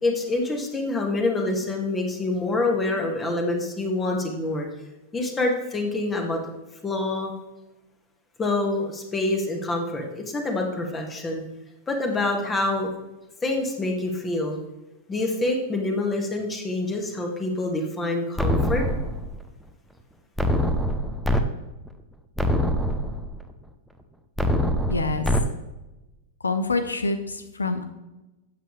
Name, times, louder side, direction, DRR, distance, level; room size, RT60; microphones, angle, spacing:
voice 1, 0.0-4.7 5.1-6.4 6.8-7.3 8.4-11.4 11.9-12.9 13.4-14.6 15.1-18.8, left 2 dB, 15° left, 2 dB, 2.0 m, -26 dB
sound 1, 18.4-19.4 20.4-21.4 21.9-22.0 22.4-23.4 24.4-25.4, equal, ahead, 0.9 m, -24 dB
voice 2, 24.9-25.4 26.4-27.8, left 3 dB, 75° left, 8 dB, 1.1 m, -26 dB
12.0 x 8.0 x 3.3 m, 1.0 s
figure-of-eight pair, 95°, 0 cm